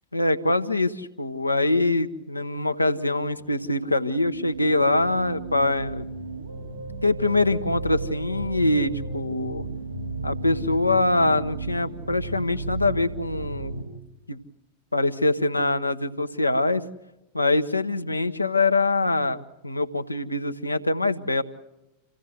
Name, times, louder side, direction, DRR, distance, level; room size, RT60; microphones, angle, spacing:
voice 1, 0.1-6.0 7.0-9.6 10.2-13.7 14.3-14.4 14.9-16.8 17.3-21.4, left 2 dB, 85° left, 9 dB, 1.0 m, -24 dB
sound 1, 3.2-13.8, right 3 dB, 85° right, 4.6 m, -34 dB
27.5 x 16.5 x 8.2 m, 0.95 s
figure-of-eight pair, 90°, 0 cm